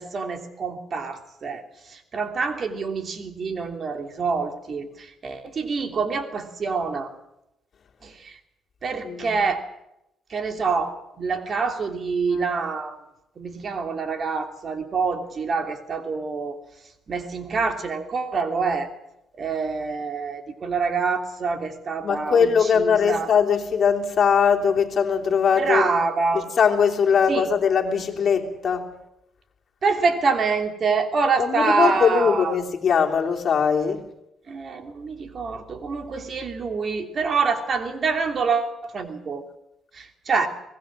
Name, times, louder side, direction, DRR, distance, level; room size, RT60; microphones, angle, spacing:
voice 1, 0.0-1.6 1.9-7.1 8.0-8.3 8.8-9.7 10.3-13.0 13.4-16.6 17.1-18.9 19.4-23.3 25.6-26.5 27.3-27.4 29.8-32.5 34.5-39.4 39.9-40.5, right 4 dB, 50° right, 7 dB, 3.0 m, -26 dB
voice 2, 9.0-9.4 12.3-12.5 22.0-25.9 26.3-28.9 31.4-34.0, left 6 dB, 55° left, 2 dB, 3.2 m, -21 dB
24.0 x 19.5 x 7.5 m, 0.86 s
cardioid pair, 90°, 0 cm